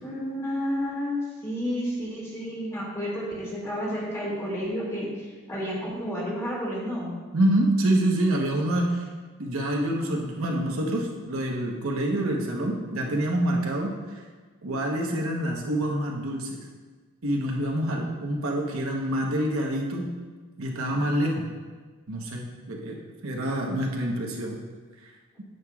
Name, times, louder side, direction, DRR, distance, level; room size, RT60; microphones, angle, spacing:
voice 1, 0.0-7.1, equal, 15° left, -5 dB, 1.9 m, -31 dB
voice 2, 7.3-9.1 9.4-14.2 14.6-16.6 17.2-20.1 20.6-21.4 22.1-24.6, right 1 dB, 75° right, -1 dB, 1.1 m, -26 dB
9.3 x 7.8 x 2.4 m, 1.4 s
head